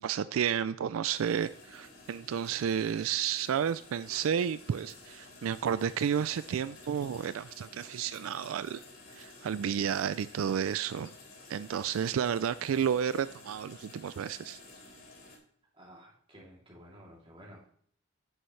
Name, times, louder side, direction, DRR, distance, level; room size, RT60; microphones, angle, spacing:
voice 1, 0.0-8.8 9.1-11.1 11.5-14.6, right 8 dB, 80° right, 14 dB, 0.3 m, -31 dB
sound 1, 1.1-15.4, left 2 dB, 50° left, 4.4 m, -52 dB
voice 2, 15.7-17.7, equal, 25° right, -4 dB, 3.0 m, -53 dB
10.0 x 10.0 x 3.2 m, 0.62 s
head